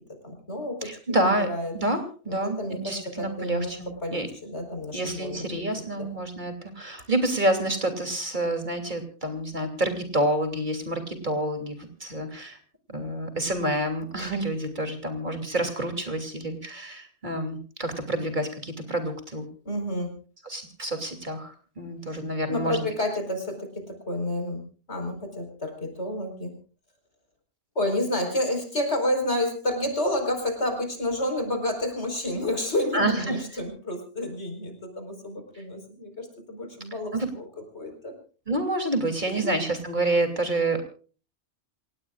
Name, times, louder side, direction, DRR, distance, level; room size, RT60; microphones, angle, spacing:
voice 1, 0.2-1.7 2.2-5.5 6.0-6.1 19.6-20.1 22.1-22.2 22.5-26.6 27.7-38.1 39.3-39.5, left 1 dB, 75° left, 5 dB, 5.0 m, -30 dB
voice 2, 0.8-1.5 1.7-4.3 4.9-12.6 12.9-19.5 20.4-22.9 32.9-33.4 37.1-37.3 38.5-40.8, right 1 dB, 45° right, 6 dB, 3.1 m, -28 dB
28.0 x 17.5 x 2.4 m, 0.39 s
omnidirectional pair, 1.2 m